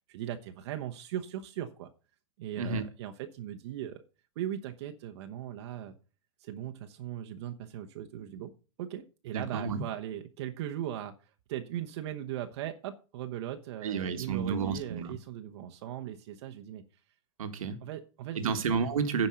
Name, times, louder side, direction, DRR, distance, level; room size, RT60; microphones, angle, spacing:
voice 1, 0.1-1.9 2.4-4.0 4.4-6.0 6.4-16.8 17.8-18.6, right 11 dB, 50° right, 1.0 m, -39 dB
voice 2, 2.6-2.9 9.3-9.8 13.8-15.2 17.4-17.8 18.3-19.3, right 5 dB, 90° right, 1.6 m, -31 dB
10.0 x 5.3 x 6.3 m
hypercardioid pair, 150°, 17 cm